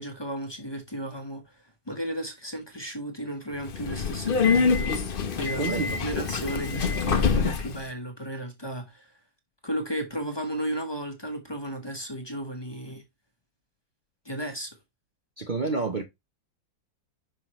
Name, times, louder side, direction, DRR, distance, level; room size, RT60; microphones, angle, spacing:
voice 1, 0.0-1.5 1.9-9.1 9.6-13.0 14.2-14.7, right 1 dB, 20° left, 0.9 m, -34 dB
Subway metro underground, 3.6-7.8, left 5 dB, 60° left, 0.5 m, -25 dB
voice 2, 5.5-6.1 15.4-16.0, right 3 dB, 70° right, 0.4 m, -29 dB
5.7 x 5.5 x 3.1 m
omnidirectional pair, 2.0 m